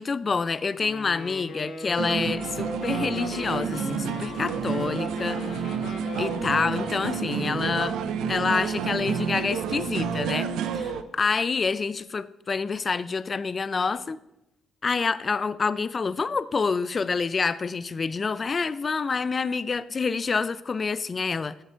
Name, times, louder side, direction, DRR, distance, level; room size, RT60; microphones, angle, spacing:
voice 1, 0.0-5.6 6.2-8.0 8.3-14.2 14.8-21.6, left 4 dB, 35° left, 16 dB, 0.4 m, -27 dB
Wind instrument woodwind instrument, 0.8-7.8, left 3 dB, 65° left, 1.7 m, -39 dB
sound 1, 2.0-11.0, right 7 dB, 85° right, 0.6 m, -30 dB
9.4 x 6.7 x 4.5 m, 0.88 s
cardioid pair, 90°, 0 cm